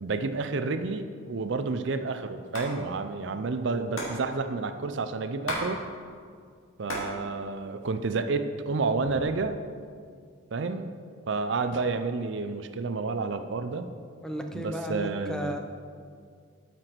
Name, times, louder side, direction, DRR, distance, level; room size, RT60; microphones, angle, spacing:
voice 1, 0.0-5.8 6.8-9.6 10.5-10.9 11.3-13.9 14.5-15.6, right 4 dB, 60° right, 9 dB, 0.5 m, -30 dB
Hands, 2.3-2.7 3.0-3.1 3.3-5.7 6.0-7.2 7.5-8.3 8.8-9.4, left 1 dB, 90° left, 2.4 m, -36 dB
voice 2, 14.2-15.6, equal, 5° left, 4 dB, 0.6 m, -34 dB
13.0 x 6.0 x 4.5 m, 2.2 s
head